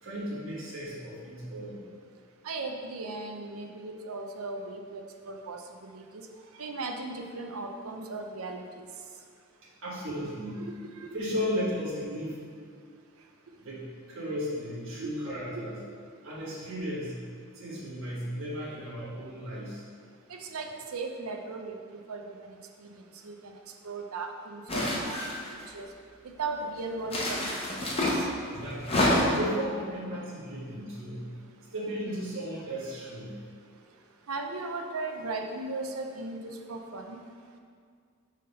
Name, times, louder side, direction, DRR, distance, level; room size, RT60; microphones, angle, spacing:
voice 1, 0.0-1.8 9.8-10.6 11.1-12.4 13.6-15.8 16.2-17.2 17.5-19.8 28.5-31.2 31.7-33.4, equal, 65° right, -8 dB, 1.5 m, -35 dB
voice 2, 2.4-5.6 5.9-6.2 6.6-8.6 10.1-10.2 10.6-11.2 15.0-15.1 15.6-15.7 20.3-21.7 22.1-22.5 22.8-22.9 23.2-23.5 23.8-25.2 25.7-25.9 26.2-27.5 27.7-28.3 34.3-37.2, right 3 dB, 90° right, 4 dB, 0.6 m, -37 dB
sound 1, 24.7-25.6 27.1-28.2 28.8-29.5, left 1 dB, 25° left, 0.9 m, -27 dB
5.3 x 3.7 x 5.4 m, 2.1 s
head